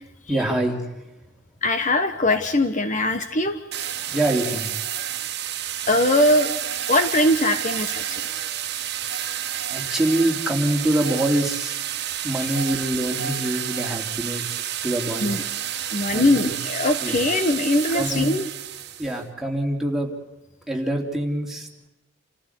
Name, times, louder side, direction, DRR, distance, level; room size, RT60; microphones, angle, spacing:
voice 1, 0.3-0.9 4.0-4.7 9.7-11.8 12.2-15.4 15.7-16.5 17.0-17.2 17.9-18.4 19.0-20.1 20.7-21.7, right 1 dB, ahead, 0 dB, 3.3 m, -25 dB
voice 2, 1.6-3.6 5.0-5.1 5.9-6.6 6.9-8.2 9.0-9.1 12.4-12.5 15.2-15.4 15.9-18.5, left 1 dB, 40° left, 8 dB, 1.2 m, -21 dB
sound 1, 3.7-19.2, right 10 dB, 60° right, 1.5 m, -30 dB
28.5 x 15.0 x 8.3 m, 1.0 s
head